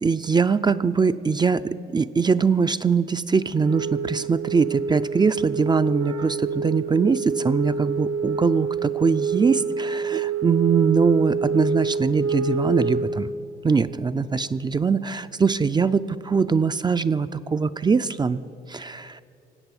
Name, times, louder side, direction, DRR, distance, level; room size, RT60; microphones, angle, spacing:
voice 1, 0.0-13.3 13.6-18.4 18.7-19.2, right 5 dB, 20° right, 12 dB, 0.4 m, -22 dB
Wind instrument woodwind instrument, 3.5-13.3, right 5 dB, 80° right, 1.0 m, -27 dB
18.5 x 8.0 x 8.1 m, 2.6 s
cardioid pair, 90°, 20 cm